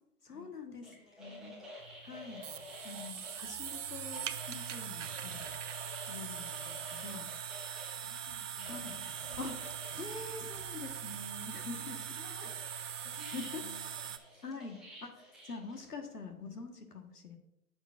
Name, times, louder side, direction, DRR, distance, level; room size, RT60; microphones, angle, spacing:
voice 1, 0.2-1.6 2.0-2.4 2.8-5.5 6.1-7.3 8.7-9.0 9.4-9.5 10.0-12.0 12.4-12.5 13.3-13.6 14.4-17.4, left 4 dB, 85° left, 5 dB, 1.5 m, -45 dB
sound 1, 0.8-7.9 8.6-10.2 10.8-10.9 11.5-15.8, equal, ahead, 1.1 m, -51 dB
voice 2, 1.2-1.8 7.9-9.5 9.9-10.0 10.7-10.9 11.5-14.7, left 4 dB, 30° left, 4 dB, 0.9 m, -58 dB
sound 2, 1.8-14.2, right 8 dB, 55° right, 0.6 m, -42 dB
9.3 x 7.0 x 2.5 m, 0.82 s
figure-of-eight pair, 140°, 45 cm